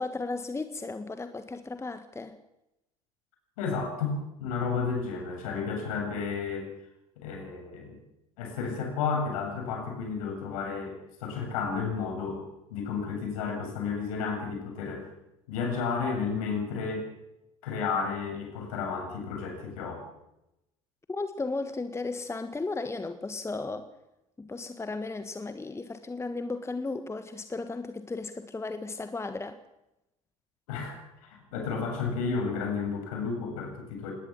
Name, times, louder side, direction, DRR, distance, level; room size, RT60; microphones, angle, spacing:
voice 1, 0.0-2.4 21.1-23.9 24.4-29.6, left 3 dB, 15° left, 10 dB, 1.5 m, -35 dB
voice 2, 3.6-6.7 7.2-8.0 8.4-11.0 11.2-12.4 12.7-15.1 15.5-17.1 17.6-20.1 30.7-34.1, left 5 dB, 65° left, 2 dB, 7.6 m, -32 dB
19.5 x 18.5 x 7.5 m, 0.88 s
figure-of-eight pair, 65°, 19 cm